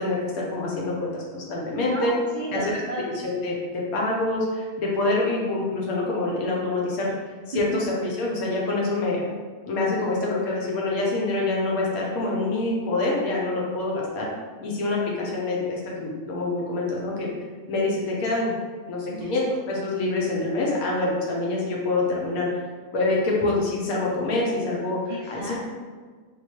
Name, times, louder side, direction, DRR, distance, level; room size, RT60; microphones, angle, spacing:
voice 1, 0.0-2.1 2.5-2.7 3.2-7.1 7.5-9.2 9.7-14.3 14.6-17.3 17.7-18.5 18.9-22.5 22.9-25.5, left 2 dB, 90° left, -3 dB, 1.3 m, -26 dB
voice 2, 1.9-3.2 7.5-7.8 19.1-19.3 25.1-25.6, right 1 dB, 85° right, -6 dB, 0.4 m, -33 dB
3.7 x 2.7 x 2.9 m, 1.5 s
omnidirectional pair, 1.5 m